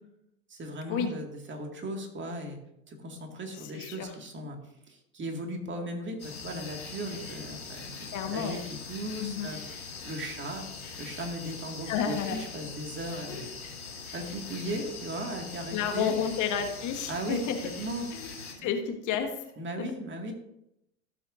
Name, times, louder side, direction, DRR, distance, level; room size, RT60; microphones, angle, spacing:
voice 1, 0.5-2.6 2.9-4.6 4.9-9.6 10.0-10.7 11.0-13.5 14.1-16.2 17.1-18.1 18.6-18.7 19.6-20.3, right 1 dB, 25° right, 3 dB, 2.1 m, -37 dB
voice 2, 3.5-4.1 8.1-8.6 9.2-9.5 11.9-12.4 13.3-14.0 15.7-17.6 18.1-18.3 18.6-19.4 19.8-19.9, left 8 dB, 45° left, 6 dB, 1.3 m, -31 dB
sound 1, 6.2-18.5, left 4 dB, 85° left, 3.3 m, -42 dB
15.0 x 7.2 x 2.6 m, 0.81 s
hypercardioid pair, 90°, 41 cm